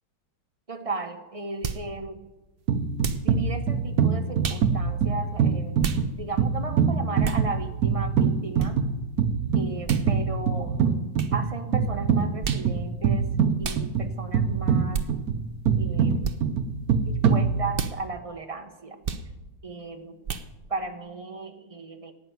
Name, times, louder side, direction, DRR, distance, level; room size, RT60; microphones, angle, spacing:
voice 1, 0.7-2.2 3.2-5.9 6.2-8.8 9.5-10.9 11.3-13.3 13.6-15.0 15.8-16.2 17.0-19.0 19.6-20.2 20.7-22.1, right 3 dB, 25° right, 6 dB, 0.7 m, -35 dB
sound 1, 1.6-1.9 3.0-3.3 4.4-4.7 5.8-6.0 7.2-7.4 8.6-8.7 9.8-10.1 11.1-11.3 12.4-12.7 13.6-13.8 14.9-15.1 16.2-16.4 17.7-18.0 19.0-19.3 20.2-20.5, right 6 dB, 85° right, 0.4 m, -31 dB
sound 2, 2.7-18.1, right 6 dB, 60° right, 1.1 m, -25 dB
17.5 x 6.9 x 9.2 m, 1.1 s
omnidirectional pair, 2.2 m